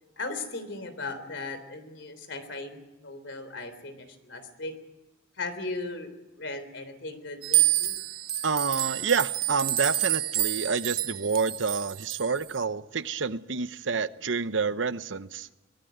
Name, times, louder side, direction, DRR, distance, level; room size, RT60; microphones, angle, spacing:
voice 1, 0.2-4.7 5.4-6.1 6.4-8.0, left 3 dB, 75° left, 11 dB, 3.5 m, -37 dB
sound 1, 7.4-12.4, right 14 dB, 55° right, 1.0 m, -28 dB
voice 2, 8.4-15.5, right 5 dB, 80° right, 14 dB, 0.9 m, -28 dB
24.0 x 17.5 x 9.4 m, 1.1 s
head